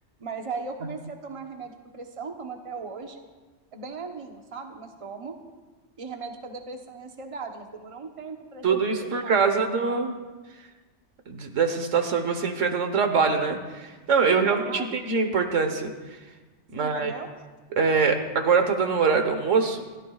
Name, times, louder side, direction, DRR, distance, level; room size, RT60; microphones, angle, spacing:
voice 1, 0.2-3.2 3.7-5.3 6.0-9.8 14.2-14.9 16.8-17.4, right 4 dB, 30° right, 3 dB, 1.1 m, -38 dB
voice 2, 8.6-10.1 11.3-15.9 16.7-17.1 17.8-19.8, right 5 dB, 85° right, 6 dB, 1.6 m, -23 dB
28.5 x 13.0 x 2.4 m, 1.3 s
omnidirectional pair, 1.3 m